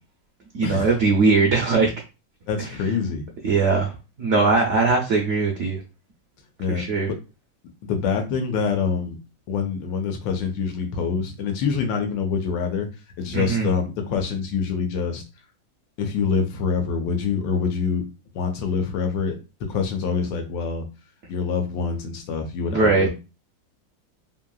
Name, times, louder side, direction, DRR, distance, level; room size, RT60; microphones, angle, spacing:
voice 1, 0.5-1.9 2.6-2.7 3.4-3.9 4.2-5.8 6.7-7.1 13.3-13.7 22.7-23.1, right 4 dB, 85° right, 0 dB, 0.6 m, -20 dB
voice 2, 2.5-3.2 6.6-7.1 7.8-9.2 9.5-12.9 13.2-15.2 16.0-18.0 18.3-19.4 19.7-20.8 21.3-23.1, left 5 dB, 90° left, 4 dB, 1.4 m, -25 dB
3.2 x 2.7 x 2.3 m, 0.29 s
omnidirectional pair, 2.0 m